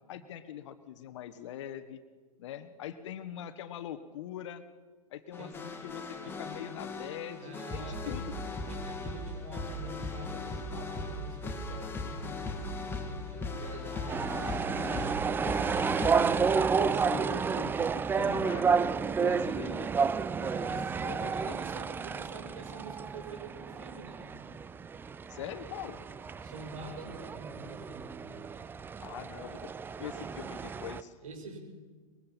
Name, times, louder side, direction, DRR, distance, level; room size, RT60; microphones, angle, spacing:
voice 1, 0.1-2.0 2.4-4.6 5.1-8.3 16.1-18.7 19.1-19.9 20.4-21.6 25.3-26.0 29.0-29.7 30.0-31.1, left 10 dB, 50° left, 12 dB, 1.5 m, -43 dB
sound 1, 5.3-16.4, left 2 dB, 10° left, 2.6 m, -38 dB
voice 2, 7.4-8.2 8.6-15.3 16.8-17.5 20.4-24.3 26.4-28.2 31.2-31.6, right 3 dB, 65° right, 3 dB, 6.6 m, -46 dB
sound 2, 14.1-31.0, right 5 dB, 10° right, 0.5 m, -31 dB
24.0 x 22.0 x 5.8 m, 1.4 s
figure-of-eight pair, 105°, 19 cm